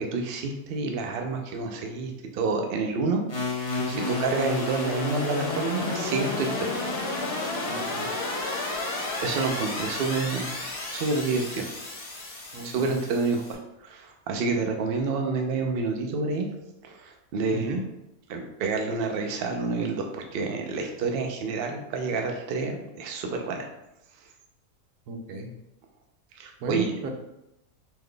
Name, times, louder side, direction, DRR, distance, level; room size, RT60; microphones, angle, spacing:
voice 1, 0.0-3.2 3.5-6.8 9.2-10.5 10.9-11.7 12.6-16.5 16.8-17.7 18.3-23.7 26.4-26.9, right 4 dB, 65° right, 3 dB, 0.5 m, -29 dB
sound 1, 3.3-13.5, left 2 dB, 50° left, 1.2 m, -31 dB
voice 2, 7.7-8.1 12.5-12.9 17.5-17.8 25.1-25.5 26.6-27.1, right 2 dB, 85° right, 4 dB, 1.1 m, -34 dB
3.9 x 2.9 x 3.2 m, 0.90 s
omnidirectional pair, 1.6 m